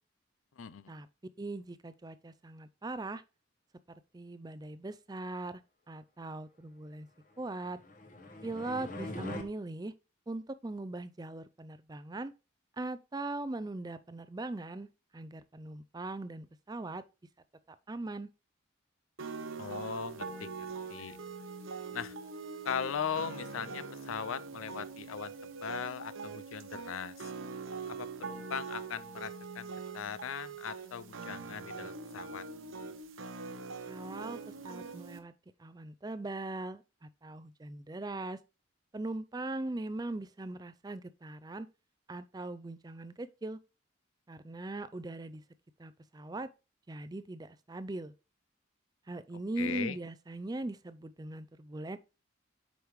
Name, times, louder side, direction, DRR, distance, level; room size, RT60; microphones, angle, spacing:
voice 1, 1.4-3.2 4.1-5.6 5.9-7.1 7.4-7.8 8.4-9.9 10.3-12.3 12.7-14.9 15.1-17.0 17.7-18.3 33.9-35.3 35.6-38.4 38.9-41.7 42.1-43.6 44.3-45.4 45.8-46.5 46.9-48.1 49.1-52.0, right 2 dB, 20° right, 0.4 m, -40 dB
sound 1, 7.5-9.4, left 2 dB, 40° left, 1.2 m, -42 dB
sound 2, 19.2-35.2, right 4 dB, 85° right, 1.0 m, -43 dB
voice 2, 19.6-21.2 21.9-22.2 22.6-27.3 27.9-32.4 49.6-50.0, left 7 dB, 90° left, 0.5 m, -39 dB
7.9 x 5.2 x 3.1 m
head